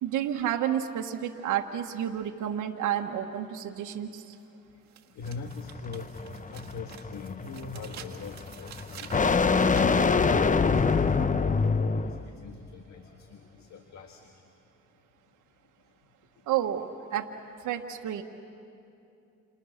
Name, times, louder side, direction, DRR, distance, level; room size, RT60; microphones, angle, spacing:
voice 1, 0.0-4.3 16.5-17.3 17.6-18.2, right 10 dB, 85° right, 2 dB, 1.4 m, -30 dB
sound 1, 4.3-4.4 4.9-10.3, right 9 dB, 65° right, 1.7 m, -48 dB
voice 2, 5.2-6.1 6.5-10.0 10.3-14.3, left 4 dB, 65° left, 5 dB, 1.8 m, -41 dB
sound 2, 5.2-12.3, left 4 dB, 25° left, 0.8 m, -26 dB
29.0 x 28.0 x 6.5 m, 2.7 s
cardioid pair, 90°, 30 cm